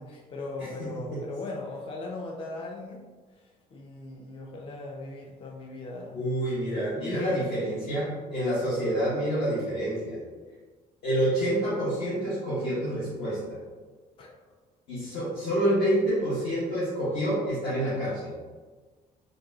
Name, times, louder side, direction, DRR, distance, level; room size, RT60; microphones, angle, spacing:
voice 1, 0.0-3.0 3.3-6.2 6.9-7.9 14.2-14.3, left 2 dB, 30° left, 0 dB, 0.4 m, -38 dB
voice 2, 6.1-10.2 11.0-13.6 14.9-18.3, right 1 dB, 75° left, -11 dB, 1.3 m, -28 dB
4.0 x 2.2 x 2.6 m, 1.4 s
cardioid pair, 110°, 17 cm